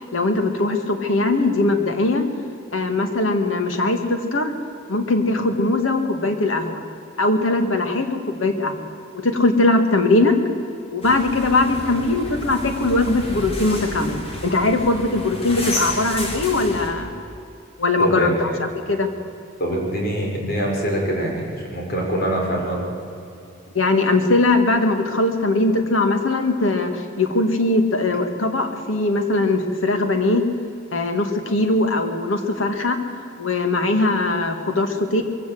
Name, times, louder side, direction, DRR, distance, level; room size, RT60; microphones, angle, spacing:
voice 1, 0.1-2.3 2.7-4.5 4.9-6.8 7.2-8.8 9.1-10.4 10.9-17.1 17.8-19.1 23.7-30.4 30.9-33.0 33.4-35.2, left 2 dB, 80° left, 6 dB, 2.1 m, -20 dB
sound 1, 11.0-16.9, left 1 dB, 30° left, 3.2 m, -31 dB
voice 2, 18.0-18.6 19.6-22.8, right 1 dB, 50° left, 0 dB, 4.9 m, -24 dB
22.0 x 16.0 x 7.8 m, 2.7 s
head